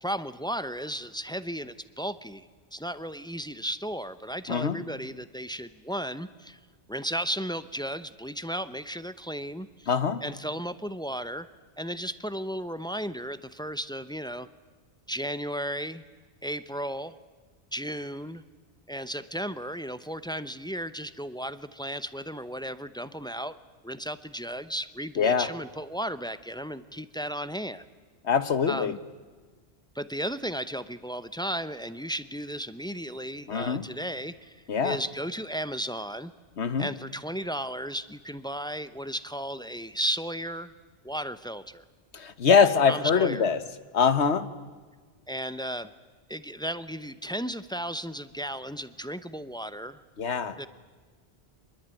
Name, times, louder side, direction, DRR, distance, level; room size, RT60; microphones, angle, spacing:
voice 1, 0.0-6.6 6.9-9.9 10.2-11.5 11.8-14.5 15.1-16.0 16.4-17.1 17.7-18.4 18.9-23.6 23.8-27.8 28.7-29.0 29.9-34.6 34.8-36.3 36.8-40.7 41.0-41.8 42.6-43.5 45.3-45.9 46.3-50.0 50.6-50.7, equal, 5° left, 13 dB, 0.7 m, -34 dB
voice 2, 4.5-4.8 9.9-10.2 25.2-25.5 28.2-29.0 33.5-33.9 34.7-35.0 36.6-36.9 42.1-43.6 43.9-44.5 50.2-50.5, left 6 dB, 85° left, 12 dB, 1.5 m, -23 dB
25.5 x 21.0 x 9.2 m, 1.4 s
omnidirectional pair, 1.1 m